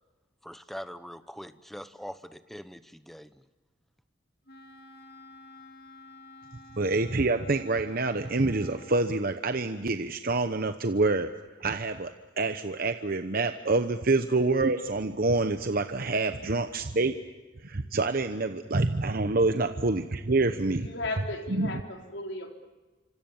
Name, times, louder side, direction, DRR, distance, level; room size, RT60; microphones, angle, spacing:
voice 1, 0.4-3.4, equal, ahead, 12 dB, 0.9 m, -43 dB
Wind instrument woodwind instrument, 4.5-9.0, left 2 dB, 55° left, 2.7 m, -51 dB
voice 2, 6.8-11.3 11.6-17.2 17.6-20.9 21.5-21.7, right 3 dB, 50° right, 8 dB, 1.0 m, -27 dB
voice 3, 20.7-22.5, left 2 dB, 70° left, 2 dB, 4.1 m, -36 dB
27.5 x 26.0 x 7.2 m, 1.2 s
head